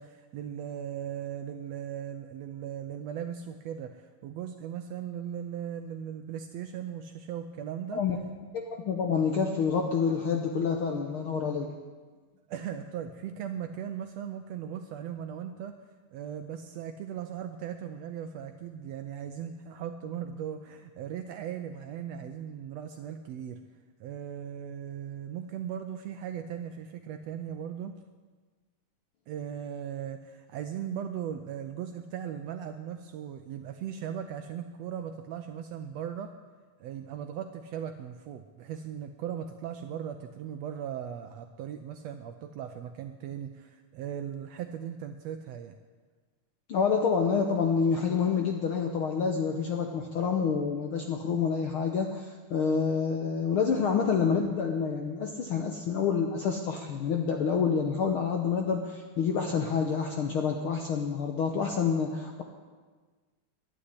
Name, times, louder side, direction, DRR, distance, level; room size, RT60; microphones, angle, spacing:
voice 1, 0.0-8.0 12.5-15.8 16.1-23.6 24.0-27.9 29.3-36.3 36.8-45.7, right 9 dB, 75° right, 7 dB, 1.5 m, -38 dB
voice 2, 8.5-11.7 46.7-62.4, left 6 dB, 70° left, 3 dB, 1.3 m, -28 dB
11.5 x 9.9 x 9.7 m, 1.4 s
omnidirectional pair, 3.6 m